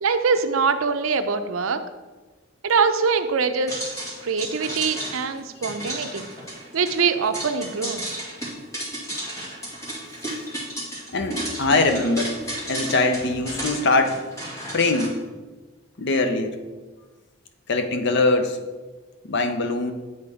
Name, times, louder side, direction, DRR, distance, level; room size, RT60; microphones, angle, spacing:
voice 1, 0.0-1.8 2.6-4.0 4.2-6.3 6.7-8.0, right 5 dB, 85° right, 9 dB, 0.6 m, -23 dB
sound 1, 3.7-15.1, right 1 dB, 15° left, 2.0 m, -33 dB
voice 2, 11.1-12.4 12.7-14.2 14.7-15.2 16.0-16.6 17.7-18.6 19.2-19.9, left 2 dB, 60° left, 7 dB, 0.7 m, -22 dB
8.6 x 4.1 x 4.9 m, 1.3 s
head